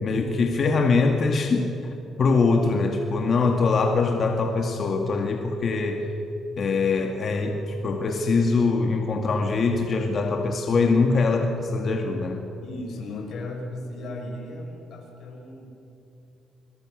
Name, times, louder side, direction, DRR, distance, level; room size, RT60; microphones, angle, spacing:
voice 1, 0.0-6.1 6.6-12.4, left 4 dB, 50° left, 3 dB, 2.3 m, -23 dB
voice 2, 12.6-15.7, left 2 dB, 70° left, 2 dB, 5.6 m, -36 dB
29.5 x 22.5 x 6.6 m, 2.9 s
cardioid pair, 90°, 0 cm